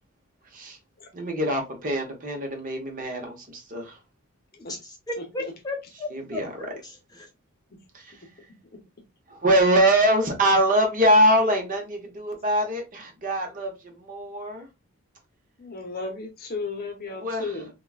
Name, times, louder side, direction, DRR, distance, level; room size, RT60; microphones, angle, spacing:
voice 1, 1.1-4.0 6.1-6.6 7.9-8.2 9.3-14.7 17.2-17.6, right 1 dB, 40° right, 0.8 m, -23 dB
voice 2, 4.7-7.3, left 2 dB, 20° left, 0.6 m, -35 dB
voice 3, 15.6-17.7, left 3 dB, 45° left, 0.8 m, -34 dB
3.5 x 2.3 x 2.3 m
head